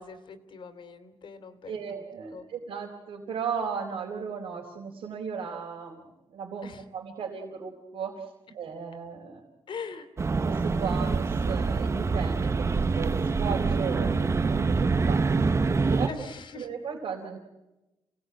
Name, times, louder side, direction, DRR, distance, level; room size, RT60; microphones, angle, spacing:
voice 1, 0.0-2.0 2.3-2.5 6.6-6.8 9.7-10.1 16.1-16.7, left 5 dB, 65° left, 9 dB, 2.9 m, -42 dB
voice 2, 1.7-9.4 10.4-15.2 15.8-16.1 16.6-17.4, right 6 dB, 90° right, -1 dB, 4.2 m, -36 dB
sound 1, 10.2-16.1, right 4 dB, 30° right, 0.8 m, -25 dB
29.0 x 18.5 x 9.0 m, 1.0 s
wide cardioid pair, 130°, 9 cm